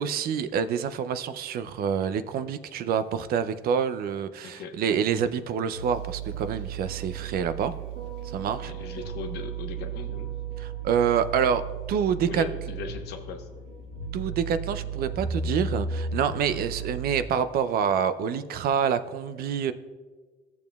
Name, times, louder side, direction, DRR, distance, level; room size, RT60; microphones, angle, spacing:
voice 1, 0.0-7.7 8.2-8.7 10.6-11.6 11.9-12.4 14.1-19.7, right 7 dB, 65° right, 12 dB, 0.5 m, -27 dB
voice 2, 4.4-4.8 8.6-10.4 12.2-13.5 16.4-16.6, left 5 dB, 75° left, 6 dB, 1.0 m, -39 dB
sound 1, 5.7-17.2, right 5 dB, 85° right, 1.5 m, -35 dB
14.0 x 7.0 x 2.3 m, 1.4 s
cardioid pair, 110°, 17 cm